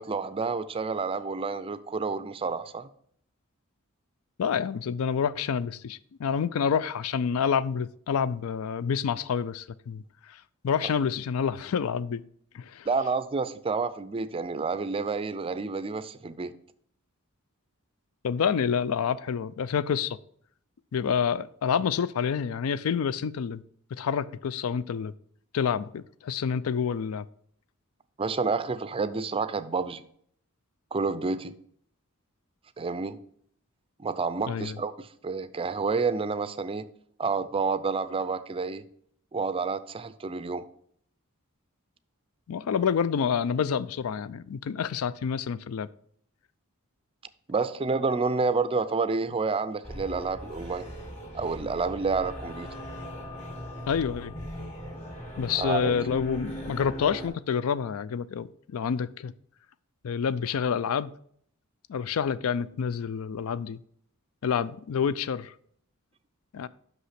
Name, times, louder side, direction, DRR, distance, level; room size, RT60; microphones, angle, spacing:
voice 1, 0.0-2.9 12.9-16.5 28.2-30.0 30.9-31.5 32.8-33.2 34.0-36.8 37.2-38.8 39.3-40.6 47.5-50.9 51.3-52.7 55.6-56.0, right 4 dB, 25° right, 0.4 m, -29 dB
voice 2, 4.4-10.0 10.6-12.2 12.5-12.9 18.2-20.2 20.9-23.6 23.9-25.1 25.5-27.2 34.5-34.8 42.5-45.9 53.9-54.3 55.4-59.3 60.0-61.1 61.9-63.8 64.4-65.5 66.5-66.7, left 7 dB, 75° left, 0.4 m, -28 dB
sound 1, 49.8-57.3, equal, 30° left, 2.7 m, -39 dB
6.1 x 5.6 x 5.8 m
head